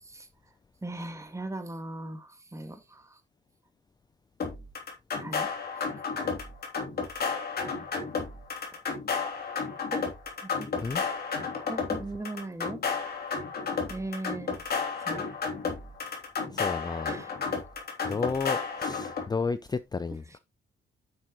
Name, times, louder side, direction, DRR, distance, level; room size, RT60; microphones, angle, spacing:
voice 1, 0.8-2.8 5.2-5.5 9.9-10.0 10.6-10.7 11.7-12.8 13.9-14.6 15.0-15.2 17.0-17.3, right 2 dB, 15° right, 1.9 m, -38 dB
sound 1, 4.4-19.3, left 5 dB, 50° left, 3.0 m, -32 dB
voice 2, 16.5-17.2 18.0-20.4, left 4 dB, 20° left, 0.5 m, -32 dB
9.5 x 6.3 x 3.0 m
cardioid pair, 90°, 20 cm